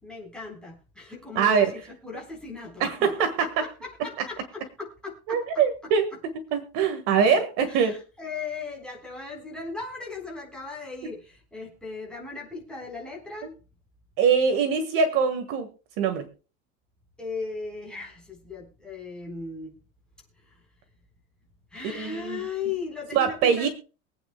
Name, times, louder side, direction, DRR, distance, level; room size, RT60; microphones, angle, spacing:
voice 1, 0.0-5.9 7.7-13.5 17.2-19.7 20.4-20.6 21.7-23.7, left 4 dB, 5° left, -3 dB, 3.8 m, -37 dB
voice 2, 1.4-1.7 2.8-3.3 5.3-6.1 6.5-7.9 13.4-13.5 14.2-15.7 16.0-16.3 21.9-22.4 23.1-23.7, right 6 dB, 45° right, 8 dB, 1.6 m, -23 dB
23.5 x 8.9 x 2.2 m, 0.36 s
cardioid pair, 175°, 31 cm